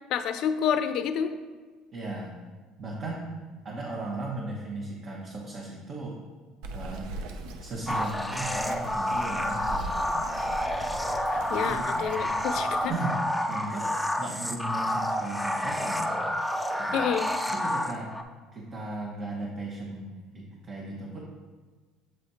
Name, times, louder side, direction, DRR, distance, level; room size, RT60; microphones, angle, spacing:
voice 1, 0.1-1.3 11.5-12.9 16.9-17.3, left 8 dB, 65° left, 10 dB, 0.4 m, -28 dB
voice 2, 1.9-2.3 2.8-3.3 3.6-6.2 6.7-7.1 7.6-10.4 11.6-12.3 12.9-13.2 13.5-16.2 16.8-17.0 17.5-18.1 18.5-21.2, right 2 dB, 40° right, -3 dB, 1.0 m, -36 dB
Bird vocalization bird call bird song, 6.6-12.9, right 2 dB, 80° right, 0.5 m, -40 dB
sound 1, 7.9-18.2, left 1 dB, ahead, 0.4 m, -29 dB
7.7 x 3.3 x 4.2 m, 1.4 s
supercardioid pair, 105°, 0 cm